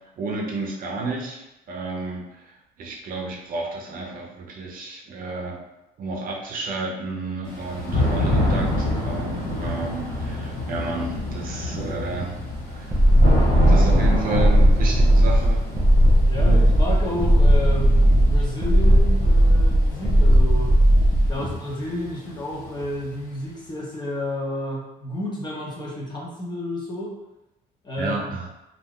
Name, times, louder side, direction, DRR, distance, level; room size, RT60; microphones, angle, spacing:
voice 1, 0.2-5.6 6.0-12.4 12.7-13.0 13.7-15.6 16.3-16.6 21.0-21.5 28.0-28.5, right 3 dB, 55° right, -1 dB, 0.7 m, -31 dB
Thunder / Rain, 7.4-23.2, left 1 dB, 45° left, 1.5 m, -28 dB
sound 1, 12.9-21.3, equal, 15° right, 0.5 m, -16 dB
voice 2, 16.2-20.8 21.3-27.1 27.8-28.3, left 1 dB, 25° left, -3 dB, 0.9 m, -31 dB
2.5 x 2.2 x 3.6 m, 0.93 s
cardioid pair, 110°, 17 cm